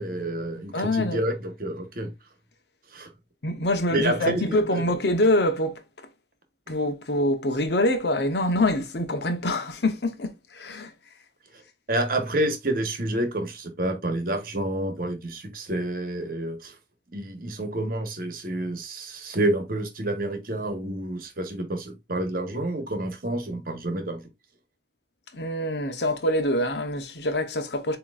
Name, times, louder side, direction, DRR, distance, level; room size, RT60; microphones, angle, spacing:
voice 1, 0.0-2.1 2.9-3.1 3.9-4.8 6.7-6.8 11.9-16.7 17.1-24.3, right 1 dB, 55° right, 1.1 m, -29 dB
voice 2, 0.7-1.2 3.4-5.8 6.7-10.9 25.3-28.0, left 1 dB, 75° left, 0.9 m, -25 dB
7.5 x 3.0 x 2.4 m
head